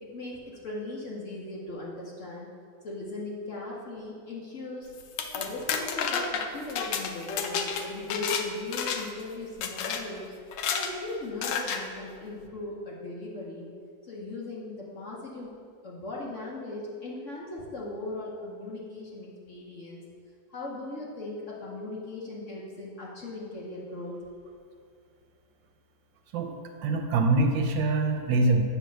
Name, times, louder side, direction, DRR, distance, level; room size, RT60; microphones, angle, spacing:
voice 1, 0.0-2.5 2.8-4.9 5.3-10.3 10.7-13.7 14.0-15.5 15.8-20.0 20.5-24.1, left 2 dB, 50° left, -4 dB, 1.0 m, -38 dB
sound 1, 5.0-8.4 8.7-9.2 9.6-10.0 10.5-10.9 11.4-11.8, left 6 dB, 75° left, 1.2 m, -30 dB
voice 2, 26.8-28.6, right 2 dB, 75° right, 4 dB, 1.4 m, -24 dB
8.5 x 3.4 x 6.2 m, 2.3 s
omnidirectional pair, 2.1 m